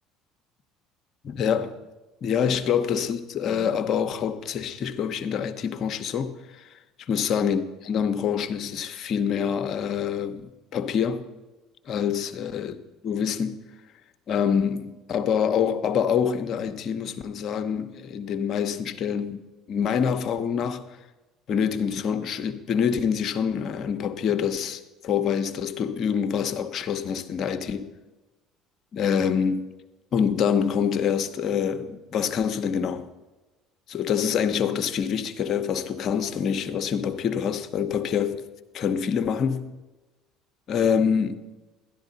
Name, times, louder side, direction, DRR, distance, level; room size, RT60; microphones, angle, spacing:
voice 1, 1.2-1.7 2.2-6.7 7.0-11.2 11.9-12.7 13.0-13.6 14.3-19.4 19.7-20.8 21.5-27.9 28.9-29.7 30.1-33.1 33.9-38.5 38.7-39.7 40.7-41.3, left 7 dB, 55° left, 0.8 m, -26 dB
12.5 x 11.0 x 4.0 m
hypercardioid pair, 75°, 0 cm